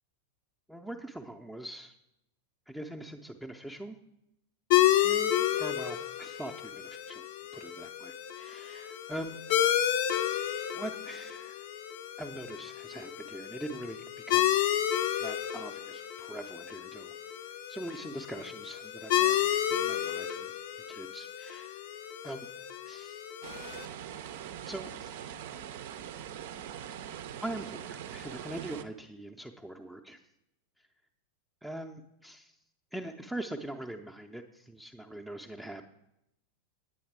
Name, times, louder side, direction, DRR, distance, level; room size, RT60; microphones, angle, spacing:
voice 1, 0.7-1.9 2.7-4.0 5.0-7.2 7.5-9.4 10.7-11.6 12.2-14.0 14.2-14.6 15.2-17.1 17.7-20.5 20.9-21.8 22.2-22.5 22.9-23.3 24.7-25.2 27.4-30.2 31.6-32.5 32.9-35.9, right 1 dB, ahead, 2 dB, 0.6 m, -42 dB
sound 1, 4.7-23.9, left 12 dB, 50° left, 0.6 m, -31 dB
sound 2, 23.4-28.8, right 9 dB, 55° right, 0.5 m, -42 dB
9.3 x 8.6 x 4.6 m, 0.83 s
figure-of-eight pair, 90°, 0 cm